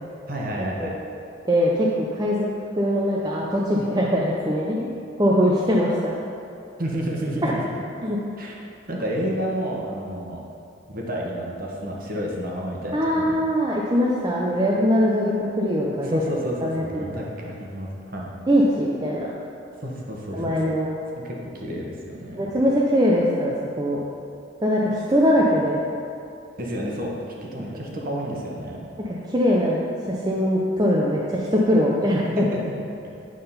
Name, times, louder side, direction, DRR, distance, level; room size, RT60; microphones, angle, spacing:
voice 1, 0.3-1.0 6.8-7.7 8.4-8.5 8.9-10.4 10.9-13.4 14.5-14.7 16.0-18.3 19.8-20.7 21.2-22.5 23.9-24.1 26.6-27.1 27.5-28.8 32.3-32.6, equal, 45° right, -2 dB, 1.1 m, -30 dB
voice 2, 1.4-2.5 2.8-4.9 5.2-6.1 7.4-7.5 8.0-8.2 12.9-16.2 16.6-17.3 18.5-19.3 20.3-20.9 22.4-24.0 24.6-25.8 29.0-29.8 30.1-32.4, equal, 20° right, -4 dB, 0.5 m, -22 dB
8.8 x 3.8 x 5.5 m, 2.6 s
head